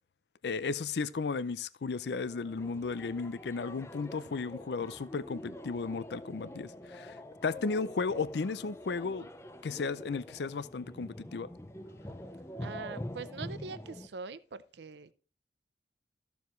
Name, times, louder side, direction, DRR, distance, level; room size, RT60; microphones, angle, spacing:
voice 1, 0.4-9.3 9.6-11.5, left 4 dB, 75° left, 0.5 m, -34 dB
sound 1, 2.1-14.1, equal, 15° left, 0.6 m, -45 dB
voice 2, 12.6-15.1, right 4 dB, 80° right, 0.6 m, -43 dB
14.0 x 7.1 x 3.1 m
head